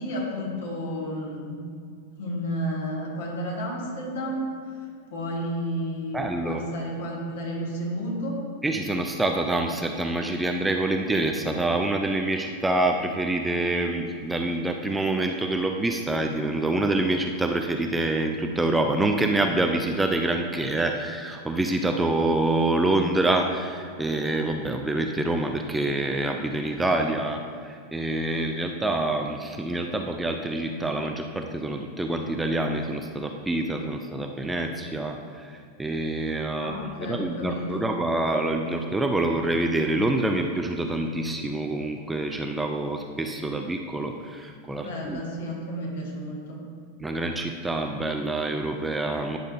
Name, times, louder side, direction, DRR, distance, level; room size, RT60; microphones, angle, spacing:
voice 1, 0.0-1.5 2.2-6.2 6.4-8.4 36.6-37.9 44.7-46.6, equal, 60° left, -2 dB, 1.7 m, -32 dB
voice 2, 6.1-6.6 8.6-45.2 47.0-49.4, right 2 dB, 10° right, 3 dB, 0.4 m, -26 dB
9.5 x 6.4 x 2.6 m, 2.2 s
figure-of-eight pair, 90°, 0 cm